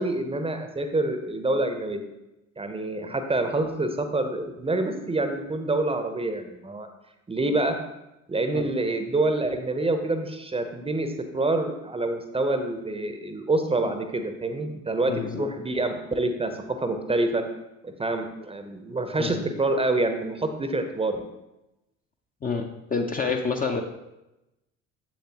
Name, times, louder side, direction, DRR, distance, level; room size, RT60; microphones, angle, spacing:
voice 1, 0.0-2.0 2.6-6.9 7.3-7.8 8.3-17.4 17.8-21.2, right 2 dB, 15° right, 7 dB, 0.7 m, -27 dB
voice 2, 15.1-15.5 19.2-19.4 22.4-23.8, left 5 dB, 20° left, 3 dB, 0.6 m, -28 dB
7.3 x 7.2 x 2.9 m, 0.94 s
figure-of-eight pair, 60°, 39 cm